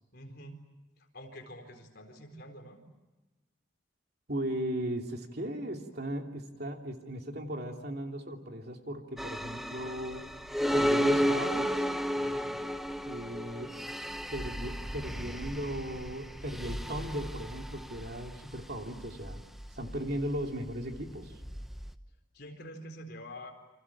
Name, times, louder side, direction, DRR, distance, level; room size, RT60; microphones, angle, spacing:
voice 1, 0.1-0.6 1.0-2.8 12.1-12.6 22.3-23.5, equal, 55° left, 4 dB, 4.4 m, -47 dB
voice 2, 4.3-10.2 10.7-11.7 13.0-13.7 14.3-19.4 19.8-21.3, right 1 dB, 50° right, 3 dB, 3.0 m, -37 dB
sound 1, 9.2-21.9, equal, ahead, 0.9 m, -33 dB
29.5 x 26.5 x 7.2 m, 1.1 s
head